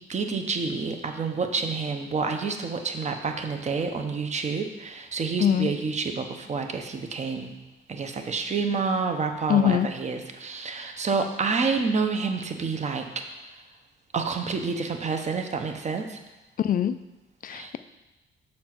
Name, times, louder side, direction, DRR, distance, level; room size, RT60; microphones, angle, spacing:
voice 1, 0.1-7.5 7.9-13.6 14.1-16.2 17.5-17.7, right 4 dB, 35° right, 5 dB, 0.9 m, -29 dB
voice 2, 9.5-9.9 16.6-17.0 17.4-17.8, left 9 dB, 45° left, 13 dB, 0.4 m, -22 dB
6.5 x 4.4 x 6.0 m, 1.0 s
cardioid pair, 90°, 20 cm